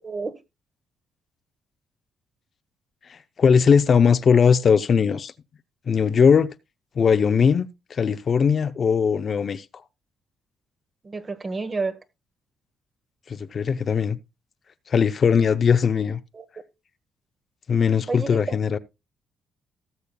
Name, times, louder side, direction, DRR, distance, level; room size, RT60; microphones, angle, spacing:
voice 1, 0.0-0.4 11.0-12.0 16.3-16.4 18.1-18.6, right 3 dB, 30° right, 1.2 m, -30 dB
voice 2, 3.1-5.3 5.9-6.5 7.0-9.7 13.3-14.2 14.9-16.2 17.7-18.8, left 6 dB, 50° left, 0.6 m, -19 dB
18.0 x 6.9 x 2.3 m
cardioid pair, 90°, 0 cm